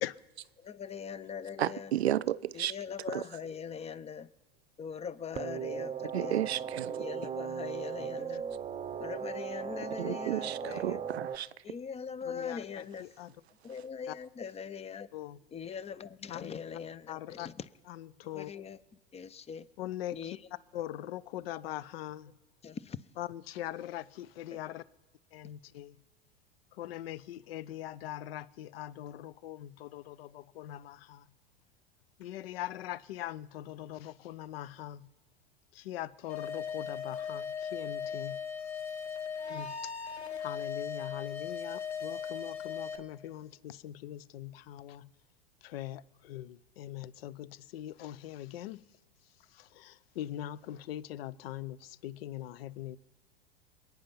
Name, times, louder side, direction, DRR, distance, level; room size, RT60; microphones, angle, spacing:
voice 1, 0.7-1.9 2.5-4.3 4.8-6.4 6.9-8.4 9.0-11.0 11.6-13.1 13.6-15.1 15.5-17.5 18.4-18.8 19.1-19.7 20.1-20.3 22.6-23.0, left 6 dB, 20° left, 0.6 m, -41 dB
voice 2, 1.6-2.8 3.1-3.3 6.1-6.9 10.0-11.5, right 11 dB, 85° right, 0.5 m, -32 dB
sound 1, 5.3-11.4, right 7 dB, 20° right, 0.9 m, -38 dB
voice 3, 12.2-13.4 14.0-14.2 15.1-15.4 16.3-16.6 17.1-17.5 17.8-18.5 19.8-22.3 23.2-24.9 25.3-26.0 26.7-31.3 32.2-35.1 35.7-38.5 39.5-45.1 45.6-48.8 49.5-53.0, left 13 dB, 65° left, 0.7 m, -42 dB
sound 2, 36.3-43.0, left 6 dB, 90° left, 1.3 m, -38 dB
27.0 x 9.2 x 5.7 m
hypercardioid pair, 90°, 31 cm